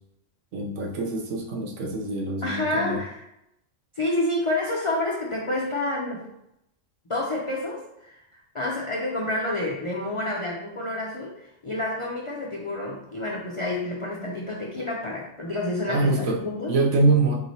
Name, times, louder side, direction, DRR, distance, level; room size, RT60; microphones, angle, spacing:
voice 1, 0.5-3.0 15.9-16.4 16.7-17.4, right 3 dB, 70° right, 1 dB, 1.0 m, -24 dB
voice 2, 2.4-3.3 3.9-6.3 7.1-8.2 8.5-16.8 17.1-17.2, left 2 dB, 55° left, -3 dB, 0.3 m, -29 dB
4.6 x 3.1 x 2.7 m, 0.82 s
omnidirectional pair, 1.4 m